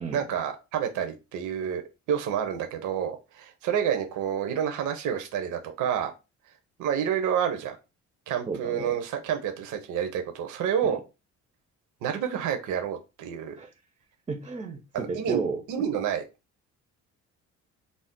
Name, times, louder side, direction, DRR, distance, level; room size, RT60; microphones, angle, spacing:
voice 1, 0.1-1.8 2.1-6.1 6.8-7.8 8.3-11.0 12.0-13.6 14.9-15.4 15.7-16.2, right 8 dB, 80° right, 6 dB, 0.6 m, -29 dB
voice 2, 8.5-9.0 10.8-11.0 13.6-13.7 14.3-15.6, right 5 dB, 20° right, 6 dB, 0.4 m, -33 dB
2.5 x 2.0 x 3.6 m, 0.28 s
cardioid pair, 90°, 30 cm